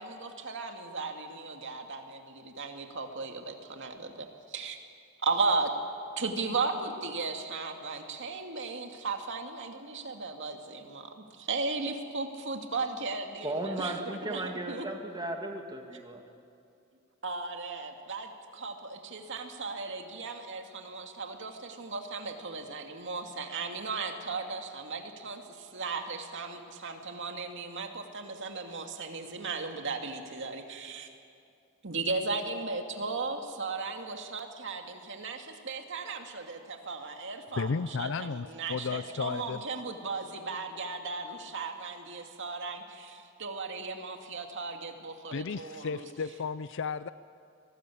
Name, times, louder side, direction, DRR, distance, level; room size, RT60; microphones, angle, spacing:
voice 1, 0.0-4.8 5.2-5.7 6.2-14.9 17.2-31.1 31.8-46.0, right 4 dB, 60° right, 4 dB, 2.4 m, -36 dB
voice 2, 13.4-16.2, right 2 dB, 20° right, 3 dB, 1.9 m, -35 dB
voice 3, 37.6-39.6 45.3-47.1, left 5 dB, 60° left, 14 dB, 0.5 m, -33 dB
25.0 x 19.0 x 8.6 m, 2.5 s
head